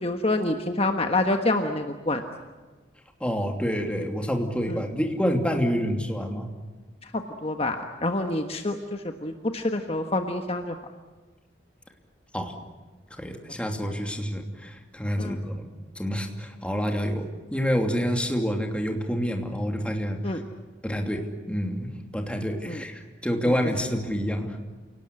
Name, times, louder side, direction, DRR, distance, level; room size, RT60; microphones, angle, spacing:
voice 1, 0.0-2.2 4.7-4.8 7.0-10.7 15.2-15.4 20.2-20.4 22.6-22.8 23.4-23.5, left 2 dB, 35° left, 5 dB, 1.4 m, -27 dB
voice 2, 3.2-6.5 12.3-12.6 13.2-15.7 16.0-17.2 17.5-20.4 20.8-21.2 21.5-24.6, equal, 5° left, 3 dB, 2.8 m, -28 dB
29.0 x 18.5 x 9.8 m, 1.3 s
head